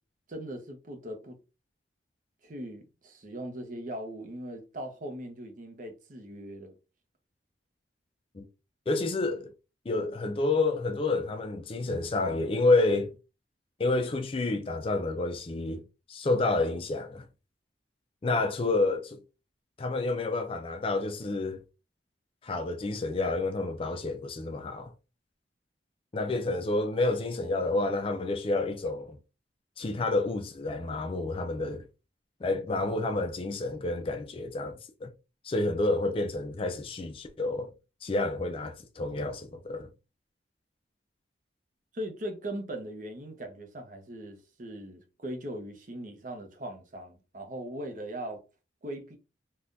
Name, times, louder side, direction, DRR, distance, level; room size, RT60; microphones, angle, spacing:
voice 1, 0.3-1.4 2.4-6.7 41.9-48.4 48.8-49.2, right 1 dB, 45° right, 0.7 m, -39 dB
voice 2, 8.9-9.5 9.9-13.1 13.8-15.8 16.1-17.2 18.2-19.2 19.8-21.6 22.4-24.9 26.1-29.2 29.8-31.8 32.4-35.1 35.4-37.7 38.0-39.9, left 2 dB, 30° left, 0.4 m, -29 dB
3.6 x 2.3 x 2.6 m
head